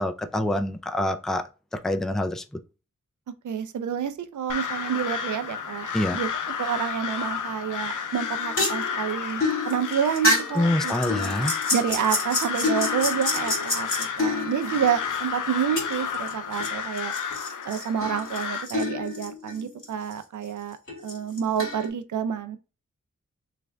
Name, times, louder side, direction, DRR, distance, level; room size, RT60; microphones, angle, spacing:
voice 1, 0.0-1.4 1.7-2.4 5.9-6.2 10.6-11.5, left 1 dB, ahead, 0.3 m, -26 dB
voice 2, 3.4-5.9 6.1-6.3 6.6-11.3 11.7-17.1 17.6-20.8 21.0-22.6, right 8 dB, 70° right, 0.5 m, -28 dB
Crow, 4.5-18.7, left 7 dB, 80° left, 0.5 m, -31 dB
sound 1, 8.2-15.2 15.8-16.7 17.0-19.8 20.1-20.2 20.9-21.9, left 2 dB, 45° left, 1.8 m, -28 dB
3.2 x 2.5 x 3.2 m
wide cardioid pair, 65°, 31 cm